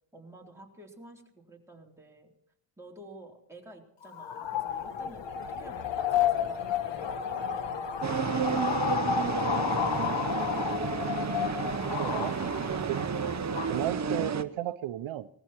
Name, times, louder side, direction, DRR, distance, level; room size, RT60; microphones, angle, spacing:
voice 1, 0.1-2.3 2.8-9.9, right 2 dB, 5° right, -2 dB, 3.7 m, -51 dB
sound 1, 4.0-13.8, left 8 dB, 65° left, 1.2 m, -31 dB
sound 2, 8.0-14.4, right 6 dB, 35° right, 0.9 m, -31 dB
voice 2, 12.0-12.4 12.8-13.1 13.7-15.3, right 12 dB, 85° right, 12 dB, 0.8 m, -33 dB
19.5 x 14.0 x 4.4 m, 0.71 s
cardioid pair, 105°, 46 cm